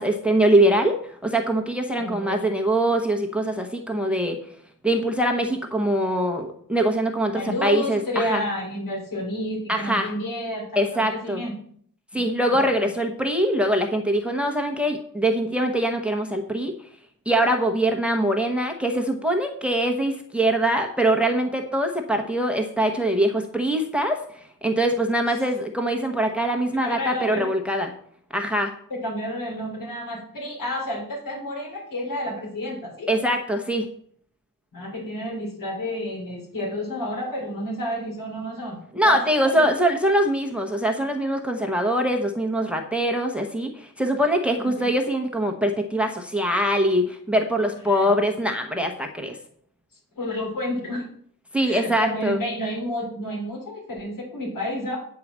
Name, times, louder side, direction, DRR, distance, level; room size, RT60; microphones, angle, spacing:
voice 1, 0.0-4.4 4.8-8.4 9.7-10.1 10.8-11.4 12.1-16.7 17.3-27.9 28.3-28.7 33.1-33.9 38.9-49.4 51.5-52.4, right 1 dB, 5° right, 3 dB, 0.9 m, -23 dB
voice 2, 2.0-2.5 7.3-11.6 12.1-12.2 12.5-12.9 25.3-25.4 26.8-27.4 28.9-33.1 34.7-39.7 44.6-44.9 47.9-48.1 50.1-51.1 51.6-55.0, equal, 75° left, 0 dB, 3.6 m, -30 dB
9.2 x 4.7 x 7.3 m, 0.62 s
wide cardioid pair, 165°, 33 cm